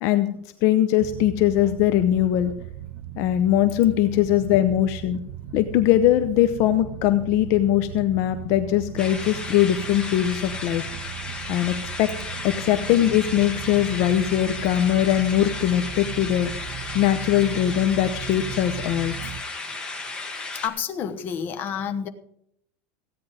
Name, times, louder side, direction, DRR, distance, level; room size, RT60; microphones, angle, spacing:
voice 1, 0.0-2.5 3.2-5.2 5.5-10.8 11.5-12.1 12.4-16.7 16.9-19.1, left 12 dB, 50° left, 10 dB, 0.7 m, -21 dB
sound 1, 1.0-19.4, right 11 dB, 50° right, 0.6 m, -37 dB
sound 2, 9.0-20.7, left 3 dB, 15° left, 2.0 m, -34 dB
voice 2, 20.6-22.1, left 8 dB, 35° left, 9 dB, 1.0 m, -29 dB
15.5 x 9.4 x 5.0 m, 0.74 s
supercardioid pair, 150°, 6 cm